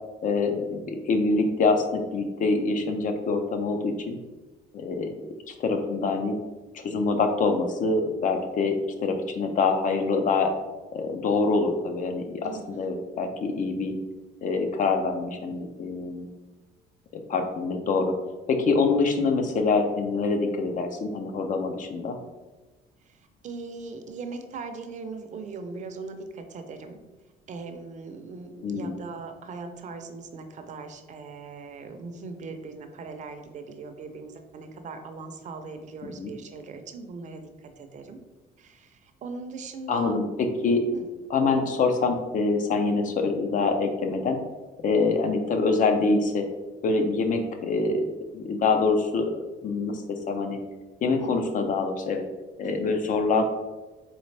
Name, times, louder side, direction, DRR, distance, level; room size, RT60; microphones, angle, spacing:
voice 1, 0.2-4.2 4.7-5.1 5.5-6.3 6.7-8.7 9.0-10.5 10.9-14.0 14.4-16.3 17.1-18.1 18.5-22.2 28.6-28.9 36.0-36.3 39.9-40.8 41.3-44.4 44.8-46.4 46.8-48.0 48.3-50.6 51.0-52.2 52.6-53.4, left 4 dB, 50° left, 5 dB, 0.6 m, -25 dB
voice 2, 12.4-13.0 23.1-27.0 27.5-38.2 38.6-40.2 40.9-41.0 51.2-51.3 52.6-53.0, right 4 dB, 45° right, 6 dB, 0.6 m, -40 dB
4.1 x 3.3 x 3.3 m, 1.2 s
cardioid pair, 110°, 17 cm